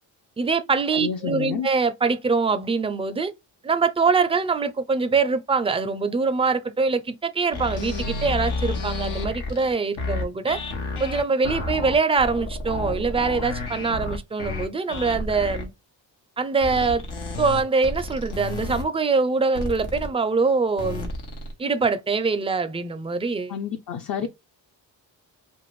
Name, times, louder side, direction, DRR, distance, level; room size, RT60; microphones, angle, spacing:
voice 1, 0.4-3.3 3.6-10.6 11.0-15.7 16.4-17.0 17.4-21.1 21.6-23.5 24.2-24.3, right 4 dB, 15° right, 0.4 m, -23 dB
voice 2, 0.9-1.7 23.5-24.3, left 8 dB, 45° left, 0.5 m, -29 dB
sound 1, 7.5-15.7 16.6-18.8 19.5-20.1 20.8-21.5, left 2 dB, 90° left, 0.9 m, -31 dB
2.5 x 2.5 x 3.0 m
supercardioid pair, 50°, 47 cm